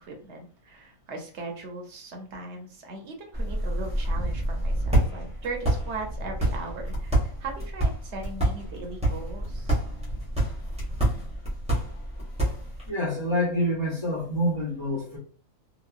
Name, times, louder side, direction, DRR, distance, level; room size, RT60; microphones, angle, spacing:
voice 1, 0.0-9.8, right 3 dB, 60° right, 1.0 m, -39 dB
sound 1, 3.3-12.9, right 1 dB, 5° right, 0.8 m, -28 dB
voice 2, 12.9-15.2, equal, 30° left, 0.6 m, -27 dB
2.9 x 2.2 x 2.3 m
omnidirectional pair, 1.5 m